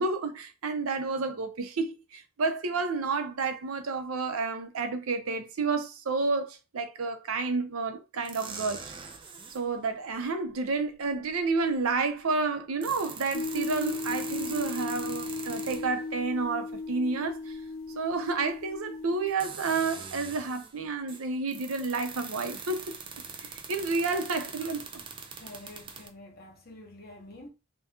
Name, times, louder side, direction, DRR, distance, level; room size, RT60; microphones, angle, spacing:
voice 1, 0.0-9.0 9.5-17.6 17.9-23.0 23.4-24.9, right 4 dB, 90° right, 0.6 m, -30 dB
sound 1, 8.2-9.7 11.2-11.3 12.6-16.1 18.3-18.4 19.3-20.8 21.1-26.1, right 5 dB, 25° right, 0.3 m, -42 dB
sound 2, 13.3-19.3, left 3 dB, 70° left, 0.4 m, -36 dB
voice 2, 25.4-27.5, left 1 dB, 45° left, 1.0 m, -48 dB
2.9 x 2.2 x 3.4 m
head